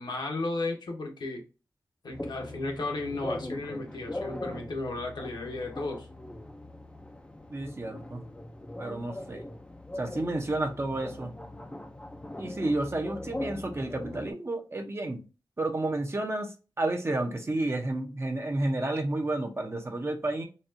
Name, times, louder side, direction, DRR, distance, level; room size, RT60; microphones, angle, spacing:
voice 1, 0.0-1.4 2.0-6.1, left 2 dB, 70° left, 0.9 m, -34 dB
sound 1, 2.1-14.3, left 1 dB, 15° left, 0.4 m, -41 dB
voice 2, 7.5-8.2 8.8-9.4 10.0-11.3 12.4-15.2 15.6-20.4, right 2 dB, 35° right, 0.7 m, -31 dB
4.1 x 2.3 x 2.5 m
wide cardioid pair, 90°, 8 cm